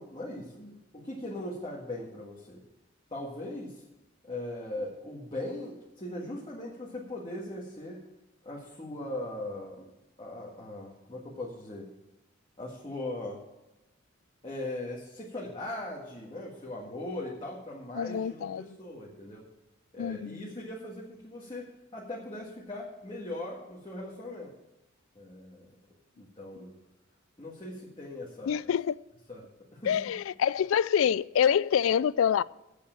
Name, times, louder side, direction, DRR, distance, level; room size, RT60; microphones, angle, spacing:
voice 1, 0.0-2.6 3.1-3.8 4.2-8.0 8.4-9.9 10.2-11.9 12.6-13.4 14.4-19.5 19.9-24.5 25.2-25.7 26.2-26.7 27.4-28.6 29.3-29.5 29.7-30.1, left 1 dB, 25° left, 1.8 m, -39 dB
voice 2, 17.9-18.7 20.0-20.5 28.5-29.0 29.8-32.4, left 8 dB, 75° left, 0.3 m, -26 dB
8.5 x 7.6 x 9.0 m
head